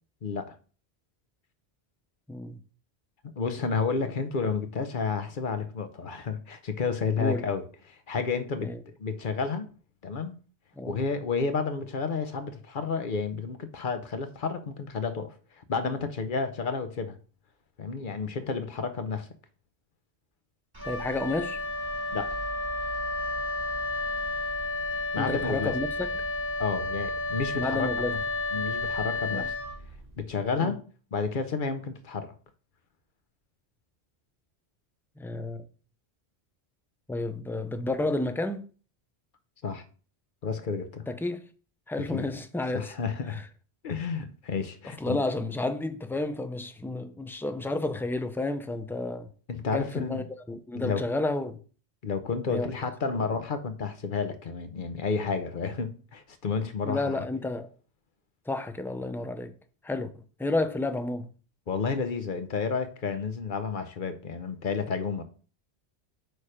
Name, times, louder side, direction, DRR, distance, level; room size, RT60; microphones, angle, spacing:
voice 1, 0.2-0.5 3.4-9.7 10.0-10.4 10.9-17.2 17.8-19.3 22.1-22.3 25.1-25.7 26.6-28.2 28.5-29.5 30.2-30.8 31.1-32.3 39.6-39.8 40.4-41.1 42.0-42.3 42.7-43.4 43.8-45.2 49.5-50.2 50.7-51.0 52.0-57.2 61.7-65.2, left 5 dB, 55° left, 0.9 m, -31 dB
voice 2, 2.3-2.6 4.0-4.1 7.2-7.4 8.6-8.8 10.8-11.0 20.8-21.6 25.2-25.9 27.5-28.2 29.3-29.5 30.6-30.7 35.2-35.7 37.1-38.7 41.1-41.5 41.9-42.9 43.3-43.4 44.9-49.3 49.7-51.6 52.5-52.7 56.8-57.7 58.5-59.6 59.8-61.3, left 2 dB, 5° left, 0.3 m, -31 dB
Wind instrument woodwind instrument, 20.7-30.2, left 2 dB, 20° right, 1.9 m, -31 dB
8.7 x 3.4 x 5.0 m
omnidirectional pair, 1.1 m